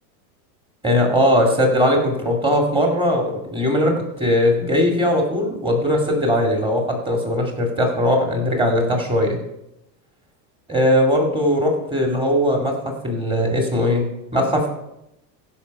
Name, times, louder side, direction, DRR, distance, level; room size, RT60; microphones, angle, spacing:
voice 1, 0.8-9.4 10.7-12.7 13.0-14.7, equal, 10° right, 1 dB, 2.2 m, -19 dB
15.0 x 5.6 x 5.3 m, 0.86 s
supercardioid pair, 140°, 49 cm